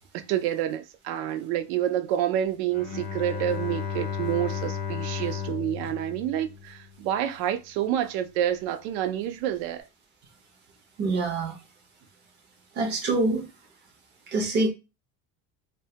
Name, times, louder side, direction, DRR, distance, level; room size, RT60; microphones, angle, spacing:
voice 1, 0.3-9.8, right 11 dB, 85° right, 0.5 m, -28 dB
Bowed string instrument, 2.7-7.0, left 7 dB, 50° left, 0.5 m, -33 dB
voice 2, 11.0-11.6 12.8-13.5 14.3-14.7, right 2 dB, 30° right, 0.5 m, -25 dB
2.2 x 2.1 x 2.7 m
cardioid pair, 180°, 35 cm